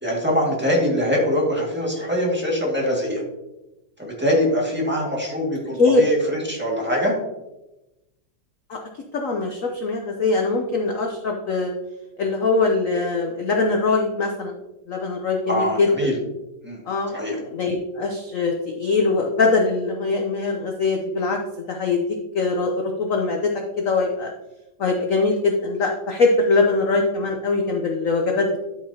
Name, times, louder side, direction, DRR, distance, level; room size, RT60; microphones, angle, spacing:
voice 1, 0.0-3.2 4.0-7.1 15.5-16.1 16.6-16.8 17.1-17.4, equal, 5° right, -3 dB, 1.7 m, -23 dB
voice 2, 8.7-11.7 12.2-14.5 14.9-16.1 16.9-24.3 24.8-28.6, left 3 dB, 70° left, 2 dB, 0.7 m, -22 dB
11.5 x 5.8 x 2.8 m, 0.97 s
omnidirectional pair, 2.4 m